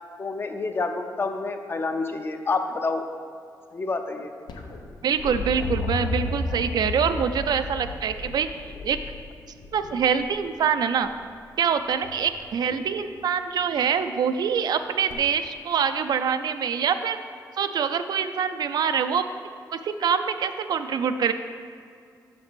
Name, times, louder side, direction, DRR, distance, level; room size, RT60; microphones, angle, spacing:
voice 1, 0.2-3.1 3.7-4.3 12.7-12.8, left 3 dB, 30° left, 6 dB, 0.5 m, -28 dB
sound 1, 4.5-10.4 12.0-12.5 15.1-15.2, left 3 dB, 85° left, 0.7 m, -32 dB
voice 2, 5.0-8.5 8.8-9.0 9.7-11.1 11.6-17.2 17.6-19.2 19.7-21.3, right 7 dB, 65° right, 9 dB, 0.3 m, -25 dB
5.8 x 5.3 x 6.0 m, 2.3 s
wide cardioid pair, 150°, 7 cm